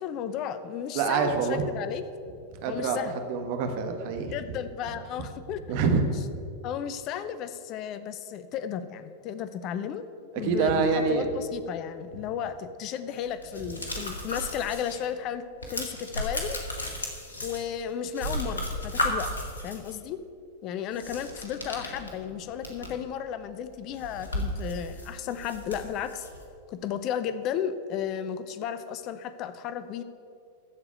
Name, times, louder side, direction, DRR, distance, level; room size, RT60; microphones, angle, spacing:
voice 1, 0.0-2.0 2.7-3.2 4.3-5.6 6.6-10.1 10.4-15.4 15.7-16.6 17.4-19.3 19.6-20.2 20.6-26.3 26.7-30.0, left 9 dB, 40° left, 12 dB, 0.7 m, -34 dB
voice 2, 0.9-1.6 2.6-3.0 3.3-4.3 5.7-6.0 6.3-6.4 10.3-11.3, right 5 dB, 50° right, 5 dB, 1.5 m, -26 dB
sound 1, 13.1-15.0 15.3-17.9 18.1-19.9 20.9-23.0 23.4-23.5 23.8-26.4, left 1 dB, 80° left, 1.9 m, -34 dB
14.0 x 4.9 x 8.4 m, 2.4 s
figure-of-eight pair, 95°, 0 cm